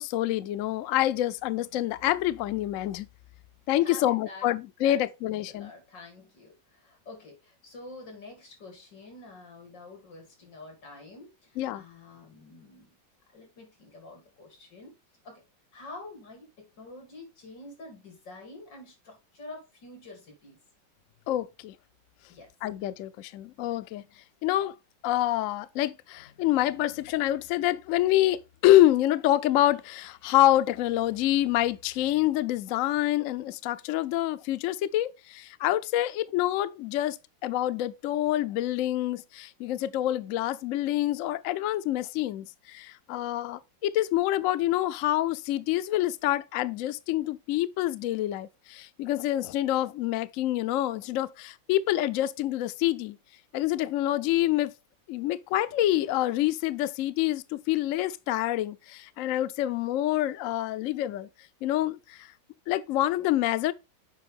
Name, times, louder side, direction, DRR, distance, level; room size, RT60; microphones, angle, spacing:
voice 1, 0.0-3.1 3.7-5.7 11.6-11.8 21.3-21.7 22.6-24.0 24.4-24.8 25.0-53.2 53.5-54.7 55.1-61.3 61.6-62.3 62.7-63.7, left 14 dB, 90° left, 0.7 m, -27 dB
voice 2, 3.8-4.5 4.8-13.0 13.3-14.9 15.2-15.4 15.7-20.6 22.3-22.5, left 2 dB, 70° left, 3.8 m, -47 dB
8.0 x 5.3 x 3.5 m
omnidirectional pair, 2.0 m